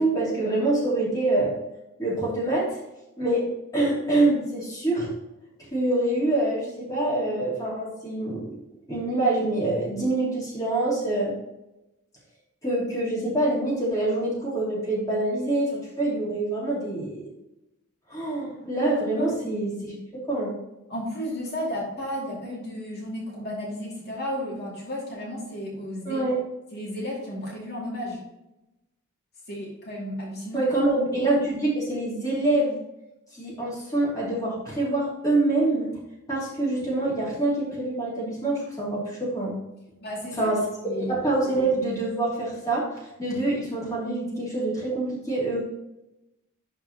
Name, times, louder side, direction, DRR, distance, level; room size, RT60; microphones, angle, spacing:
voice 1, 0.0-1.5 2.0-2.8 3.2-5.1 5.7-8.5 8.9-11.3 12.6-17.3 18.1-20.5 26.0-26.3 30.5-32.8 33.3-35.9 36.3-39.5 40.4-40.6 41.0-42.9 43.2-45.6, right 2 dB, 15° left, -7 dB, 2.7 m, -25 dB
voice 2, 20.9-26.2 26.7-28.2 29.5-30.7 40.0-40.5 40.8-41.1, equal, 50° left, -4 dB, 2.4 m, -33 dB
11.5 x 4.7 x 2.9 m, 0.93 s
head